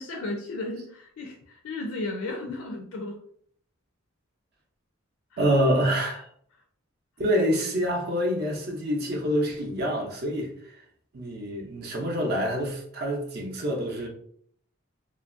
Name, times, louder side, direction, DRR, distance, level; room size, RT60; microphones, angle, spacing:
voice 1, 0.0-3.2 5.3-5.4, left 2 dB, 80° left, 0.4 m, -34 dB
voice 2, 5.4-6.3 7.2-10.8 11.1-14.1, equal, 50° right, 0.5 m, -26 dB
2.9 x 2.5 x 2.5 m
head